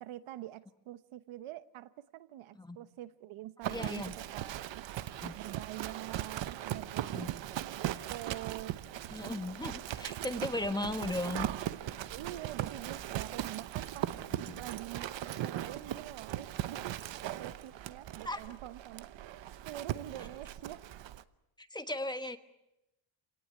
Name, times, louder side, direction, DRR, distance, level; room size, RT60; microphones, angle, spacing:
voice 1, 0.0-4.8 5.4-8.7 10.3-10.5 12.1-14.1 14.6-16.9 17.4-19.1 19.6-20.8, right 14 dB, 90° right, 14 dB, 1.0 m, -45 dB
Livestock farm animals working animals, 3.6-21.2, right 12 dB, 65° right, 1.0 m, -39 dB
voice 2, 3.7-4.1 5.2-5.3 7.1-7.3 9.1-11.5 14.3-14.6 18.2-18.4 21.6-22.4, left 2 dB, 10° left, 8 dB, 1.3 m, -37 dB
27.5 x 18.5 x 8.6 m, 0.93 s
cardioid pair, 125°, 47 cm